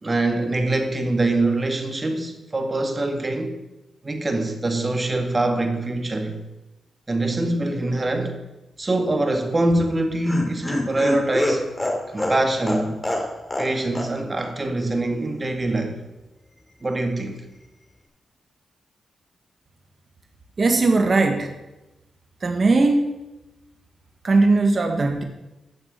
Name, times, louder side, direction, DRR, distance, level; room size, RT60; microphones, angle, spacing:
voice 1, 0.0-3.6 4.0-6.4 7.1-8.4 8.8-11.7 12.1-13.0 13.6-16.0 16.8-17.4, right 2 dB, 30° right, 2.1 m, -24 dB
Laughter, 9.7-13.7 14.0-14.1 14.4-14.5, left 1 dB, 20° left, 2.9 m, -26 dB
voice 2, 20.6-21.5 22.4-23.1 24.2-25.2, right 3 dB, 45° right, 1.7 m, -19 dB
12.0 x 7.3 x 7.6 m
cardioid pair, 65°, 0 cm